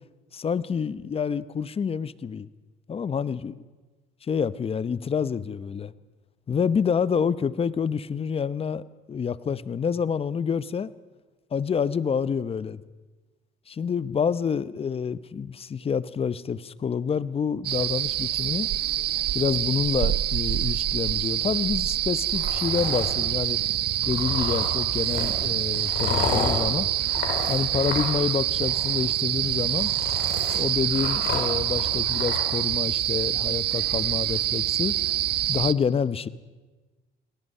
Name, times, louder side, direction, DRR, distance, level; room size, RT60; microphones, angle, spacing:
voice 1, 0.3-2.5 2.9-3.5 4.2-5.9 6.5-10.9 11.5-12.8 13.7-18.7 19.3-23.6 24.0-26.9 27.5-29.9 30.5-35.0 35.5-36.3, left 6 dB, 30° left, 17 dB, 0.8 m, -27 dB
sound 1, 17.6-35.7, right 13 dB, 60° right, 0.7 m, -26 dB
sound 2, 22.3-23.2 24.0-28.3 28.5-29.0 29.5-32.4, left 5 dB, 65° left, 4.8 m, -32 dB
28.5 x 19.0 x 5.6 m, 1.2 s
cardioid pair, 100°, 19 cm